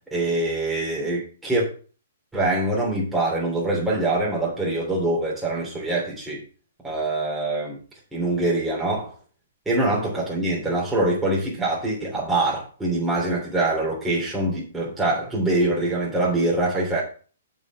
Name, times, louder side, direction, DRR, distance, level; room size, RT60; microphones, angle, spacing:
voice 1, 0.1-1.7 2.3-6.4 6.8-7.8 8.1-9.1 9.6-17.0, right 2 dB, 5° right, -5 dB, 3.3 m, -24 dB
8.0 x 5.5 x 6.1 m, 0.39 s
hypercardioid pair, 135°, 0 cm